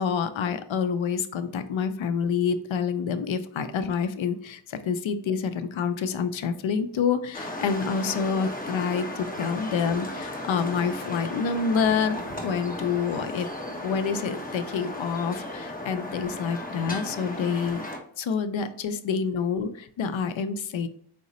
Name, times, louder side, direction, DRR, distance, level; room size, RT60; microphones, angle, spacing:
voice 1, 0.0-12.2 12.4-13.5 13.8-17.8 18.2-20.9, left 6 dB, 75° left, 10 dB, 0.6 m, -27 dB
sound 1, 7.3-18.0, left 1 dB, 20° left, 0.9 m, -35 dB
4.7 x 2.1 x 4.0 m, 0.64 s
cardioid pair, 55°, 48 cm